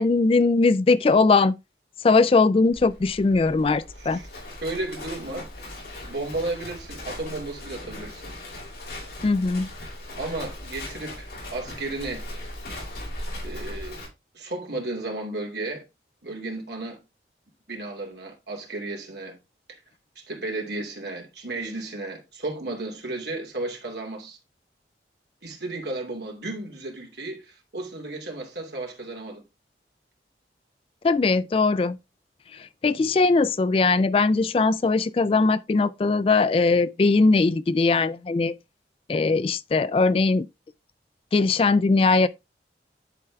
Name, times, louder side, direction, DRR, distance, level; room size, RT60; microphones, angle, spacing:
voice 1, 0.0-1.5 2.0-4.2 9.2-9.7 31.0-32.0 32.5-38.5 39.1-40.5 41.3-42.3, left 3 dB, 30° left, 0.3 m, -20 dB
Livestock farm animals working animals, 2.7-14.1, left 1 dB, 65° left, 5.0 m, -38 dB
voice 2, 4.6-5.5 6.0-8.4 10.2-12.3 13.4-14.0 14.3-15.8 16.2-17.0 17.7-19.4 19.7-19.8 20.2-24.4 25.4-29.4, right 2 dB, 70° right, 2.7 m, -33 dB
11.0 x 4.5 x 3.5 m
head